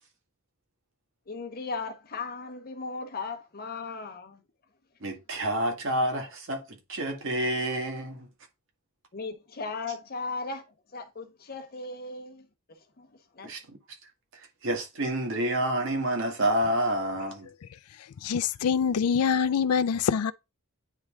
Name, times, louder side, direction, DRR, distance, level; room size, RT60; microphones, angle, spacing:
voice 1, 1.3-4.4 9.1-10.7 10.9-12.5 13.0-13.1 13.3-13.5, left 4 dB, 45° left, 1.0 m, -37 dB
voice 2, 5.0-8.3 13.4-13.8 14.3-17.5, right 1 dB, 60° right, 1.7 m, -29 dB
voice 3, 18.0-20.3, left 6 dB, 80° left, 0.4 m, -25 dB
9.2 x 3.2 x 3.6 m
head